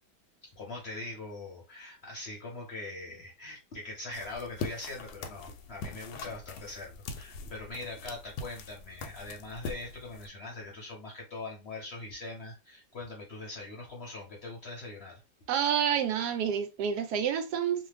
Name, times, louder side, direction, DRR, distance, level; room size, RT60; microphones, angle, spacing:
voice 1, 0.4-15.2, left 2 dB, 55° left, 0.8 m, -42 dB
sound 1, 4.1-10.3, left 4 dB, 75° left, 1.1 m, -42 dB
voice 2, 15.5-17.9, right 8 dB, 75° right, 1.1 m, -29 dB
2.6 x 2.4 x 3.3 m
omnidirectional pair, 1.8 m